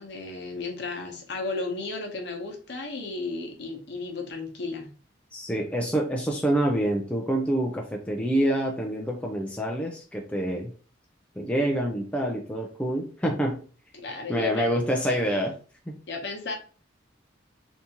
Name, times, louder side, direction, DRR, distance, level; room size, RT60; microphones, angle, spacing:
voice 1, 0.0-4.9 14.0-14.7 16.1-16.6, left 3 dB, 60° left, 2 dB, 0.9 m, -34 dB
voice 2, 5.3-10.7 11.4-13.6 14.3-15.5 15.9-16.0, right 1 dB, 5° left, 0 dB, 0.4 m, -26 dB
3.5 x 2.7 x 2.8 m, 0.38 s
head